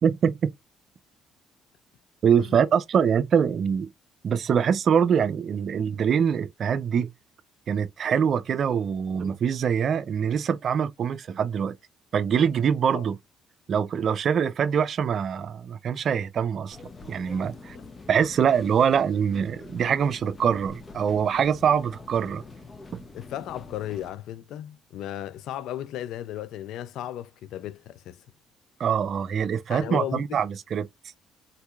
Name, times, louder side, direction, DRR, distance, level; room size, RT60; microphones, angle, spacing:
voice 1, 0.0-0.5 2.2-3.9 4.2-7.1 7.7-11.7 12.1-13.2 13.7-16.8 17.1-17.8 18.1-22.4 28.8-30.9, right 7 dB, 55° right, 0.5 m, -24 dB
sound 1, 16.7-24.1, left 3 dB, 30° left, 0.8 m, -45 dB
voice 2, 23.1-28.2 29.7-30.4, left 12 dB, 75° left, 0.3 m, -35 dB
3.9 x 2.8 x 2.4 m
supercardioid pair, 85°, 0 cm